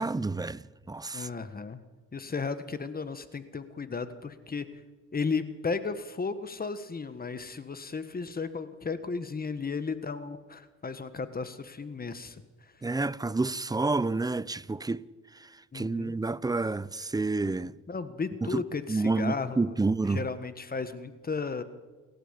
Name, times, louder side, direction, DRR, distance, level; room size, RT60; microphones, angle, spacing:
voice 1, 0.0-1.3 12.8-15.1 15.3-15.5 15.7-17.8 18.4-18.6 18.9-20.2, right 3 dB, 15° right, 0.6 m, -29 dB
voice 2, 1.1-1.8 2.1-4.7 5.1-12.7 15.7-16.1 17.9-19.8 20.1-21.6, left 4 dB, 30° left, 1.5 m, -34 dB
29.0 x 12.5 x 8.3 m
cardioid pair, 90°, 30 cm